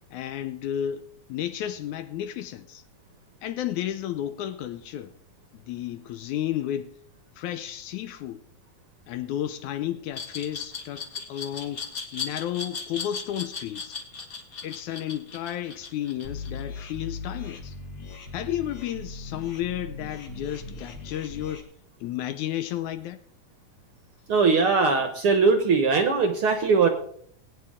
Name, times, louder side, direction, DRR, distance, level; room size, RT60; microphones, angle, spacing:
voice 1, 0.1-2.8 3.4-5.1 5.5-6.9 7.4-8.4 9.1-14.0 14.6-17.8 18.3-21.7 22.0-23.2, left 11 dB, 80° left, 1.8 m, -32 dB
Glass, 10.1-17.0, left 5 dB, 35° left, 2.1 m, -36 dB
sound 1, 16.2-21.6, left 3 dB, 60° left, 3.0 m, -39 dB
voice 2, 24.3-26.9, right 4 dB, 70° right, 1.3 m, -20 dB
20.5 x 10.0 x 3.7 m
omnidirectional pair, 4.0 m